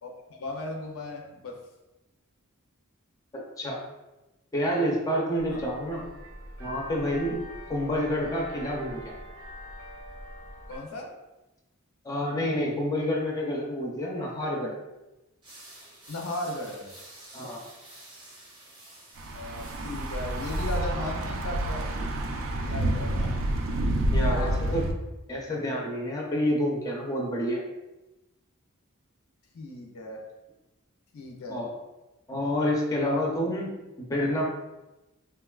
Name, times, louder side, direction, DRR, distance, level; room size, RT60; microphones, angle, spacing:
voice 1, 0.0-1.6 5.5-5.6 10.7-11.1 16.1-16.9 19.3-21.8 22.6-23.4 24.2-24.8 29.5-30.2 31.1-31.6, left 1 dB, 75° left, 1 dB, 0.5 m, -36 dB
voice 2, 3.3-3.8 4.5-6.0 6.6-7.4 7.7-9.1 12.0-14.7 17.3-17.6 24.1-24.8 25.3-27.6 31.5-31.7 32.3-33.8 34.1-34.4, equal, 15° left, -2 dB, 0.5 m, -28 dB
sound 1, 5.4-10.8, left 1 dB, 85° right, 0.7 m, -43 dB
sound 2, 15.4-20.8, right 1 dB, 20° right, 0.7 m, -49 dB
Thunder / Bicycle, 19.2-24.9, right 1 dB, 65° right, 0.4 m, -28 dB
3.7 x 2.2 x 2.3 m, 1.0 s
head